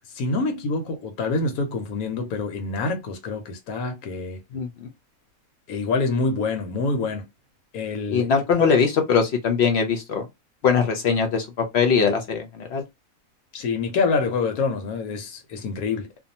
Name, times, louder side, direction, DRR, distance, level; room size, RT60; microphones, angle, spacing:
voice 1, 0.1-4.4 5.7-7.3 7.7-8.3 8.6-8.7 13.5-16.1, left 4 dB, 85° left, 1.2 m, -26 dB
voice 2, 4.5-4.9 8.1-10.2 10.6-12.8, left 6 dB, 60° left, 0.7 m, -21 dB
2.6 x 2.3 x 2.6 m
omnidirectional pair, 1.5 m